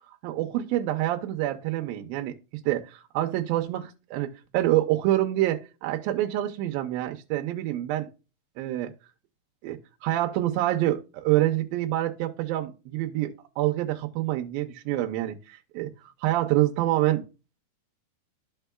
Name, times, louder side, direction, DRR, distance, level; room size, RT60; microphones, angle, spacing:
voice 1, 0.2-2.4 2.7-8.1 8.6-8.9 9.6-15.9 16.2-17.2, right 14 dB, 85° right, 2.5 m, -27 dB
13.0 x 4.5 x 2.3 m
omnidirectional pair, 4.1 m